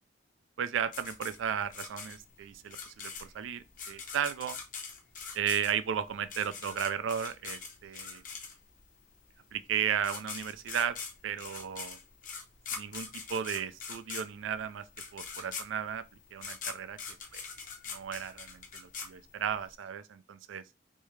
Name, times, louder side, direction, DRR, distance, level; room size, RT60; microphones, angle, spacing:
voice 1, 0.6-4.6 5.3-8.2 9.5-11.0 11.2-12.0 12.7-14.9 15.1-16.0 16.3-17.0 17.3-17.4 17.9-20.6, right 8 dB, 90° right, 0.4 m, -34 dB
sound 1, 0.9-8.9 9.7-9.8 10.0-19.7, left 5 dB, 45° left, 0.8 m, -42 dB
3.3 x 2.7 x 3.1 m
head